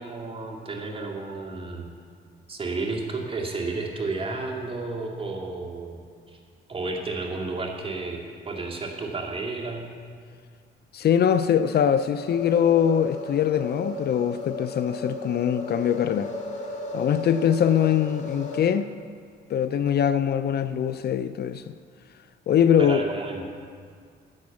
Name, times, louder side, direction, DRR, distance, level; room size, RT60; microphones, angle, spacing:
voice 1, 0.0-1.9 2.5-6.0 6.3-6.4 6.7-9.9 22.8-23.4, right 3 dB, 25° right, -1 dB, 2.2 m, -32 dB
voice 2, 10.9-16.3 16.9-18.9 19.5-21.7 22.5-23.0, left 9 dB, 55° left, 12 dB, 0.5 m, -22 dB
sound 1, 12.1-18.6, left 2 dB, 35° left, 2.1 m, -35 dB
10.5 x 8.6 x 7.2 m, 2.1 s
cardioid pair, 90°, 20 cm